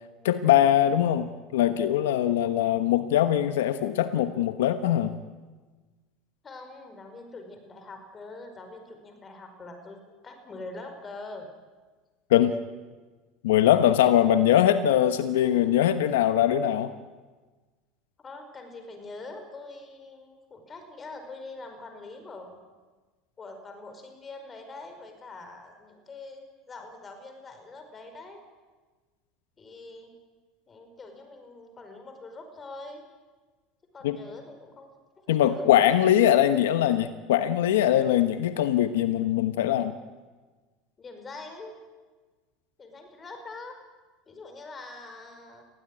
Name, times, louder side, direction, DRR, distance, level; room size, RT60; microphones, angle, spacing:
voice 1, 0.2-5.1 12.3-12.5 13.4-16.9 34.0-34.2 35.3-40.0, left 11 dB, 90° left, 11 dB, 1.1 m, -22 dB
voice 2, 6.4-11.5 14.0-14.1 18.2-22.6 23.4-28.4 29.6-30.1 30.7-33.0 33.9-34.9 35.2-35.7 41.0-41.8 42.8-43.8 44.3-45.6, left 3 dB, 25° left, 6 dB, 5.1 m, -44 dB
21.0 x 16.0 x 9.9 m, 1.3 s
supercardioid pair, 110°, 0 cm